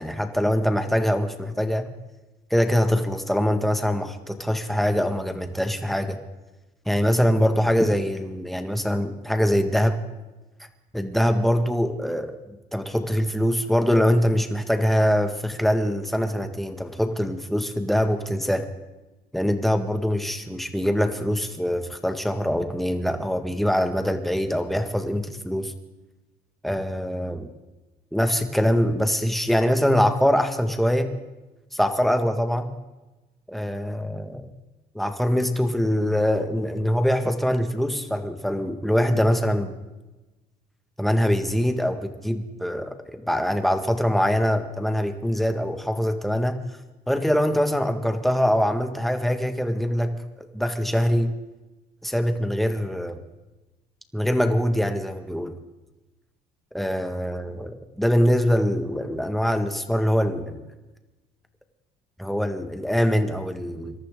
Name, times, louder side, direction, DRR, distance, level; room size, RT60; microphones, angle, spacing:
voice 1, 0.0-1.8 2.5-6.2 6.9-10.0 10.9-12.3 12.7-18.6 19.3-25.7 26.6-27.5 28.1-31.1 31.7-32.7 33.5-34.5 35.0-39.7 41.0-46.6 47.1-50.1 50.5-51.3 52.0-53.2 54.1-55.5 56.7-60.6 62.2-63.9, equal, ahead, 6 dB, 1.8 m, -23 dB
26.0 x 13.0 x 3.8 m, 1.1 s
cardioid pair, 110°, 17 cm